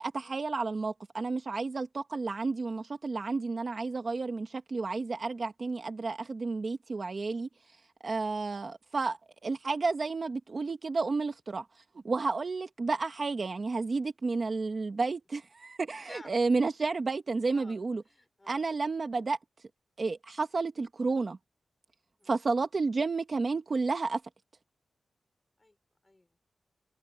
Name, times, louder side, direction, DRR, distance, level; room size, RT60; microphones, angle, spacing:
voice 1, 0.0-7.5 8.0-11.7 12.0-18.0 18.5-19.4 20.0-21.4 22.3-24.2, right 3 dB, 40° right, 1.5 m, -31 dB
voice 2, 16.1-16.4 17.5-17.8 18.1-18.6 22.2-22.6 25.6-25.8 26.0-26.4, left 2 dB, 20° left, 5.3 m, -53 dB
wide cardioid pair, 145°, 0 cm